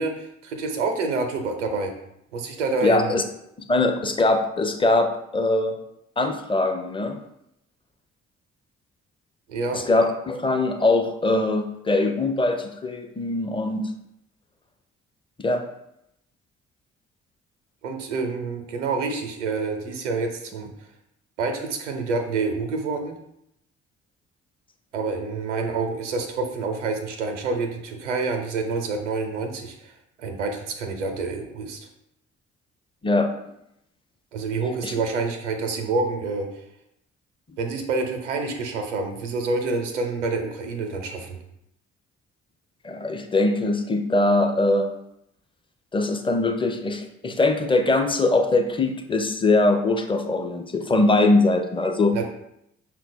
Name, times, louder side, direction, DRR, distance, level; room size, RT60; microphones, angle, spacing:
voice 1, 0.0-1.9 2.3-3.1 9.5-9.9 17.8-20.7 21.4-23.1 24.9-29.9 30.2-31.9 34.3-36.5 37.6-41.4 52.1-52.3, right 3 dB, 85° right, 5 dB, 0.6 m, -27 dB
voice 2, 2.8-3.2 3.7-5.7 6.2-7.2 9.7-13.9 15.4-15.6 33.0-33.3 34.8-34.9 42.8-44.9 45.9-52.2, left 2 dB, 15° left, 7 dB, 0.6 m, -22 dB
5.7 x 2.2 x 4.1 m, 0.78 s
figure-of-eight pair, 40°, 35 cm